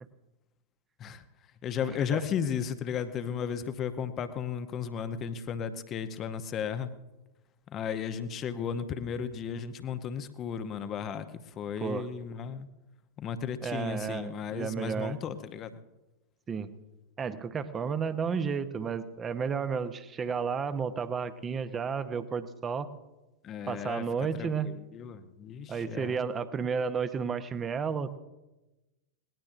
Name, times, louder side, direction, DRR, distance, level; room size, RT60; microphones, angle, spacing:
voice 1, 1.6-6.9 7.7-12.7 13.2-15.8 23.4-26.2, left 7 dB, 30° left, 10 dB, 0.9 m, -35 dB
voice 2, 13.6-15.2 16.5-16.7 17.2-22.9 23.7-24.7 25.7-28.2, right 6 dB, 20° right, 12 dB, 0.9 m, -32 dB
21.5 x 19.0 x 2.6 m, 1.1 s
figure-of-eight pair, 90°, 0 cm